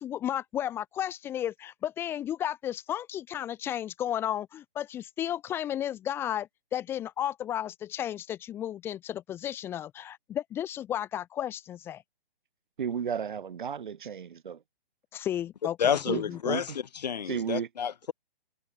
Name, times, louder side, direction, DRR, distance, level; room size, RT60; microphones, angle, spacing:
voice 1, 0.0-12.0 15.1-16.7, left 11 dB, 10° left, 1.4 m, -33 dB
voice 2, 12.8-14.6 16.1-16.6 17.3-17.7, right 7 dB, 55° right, 2.4 m, -33 dB
voice 3, 15.8-18.1, left 8 dB, 45° left, 1.3 m, -30 dB
hypercardioid pair, 170°, 29 cm